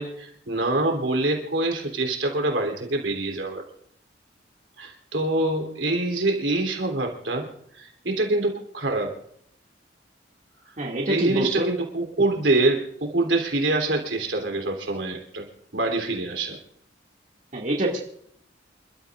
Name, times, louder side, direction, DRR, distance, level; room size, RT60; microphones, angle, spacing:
voice 1, 0.0-3.6 4.8-7.5 7.7-9.1 11.1-15.4 15.7-16.6, right 2 dB, 85° right, 2 dB, 3.3 m, -25 dB
voice 2, 10.8-11.7 17.5-18.0, right 1 dB, 45° right, -2 dB, 2.4 m, -25 dB
28.5 x 13.0 x 2.5 m, 0.67 s
head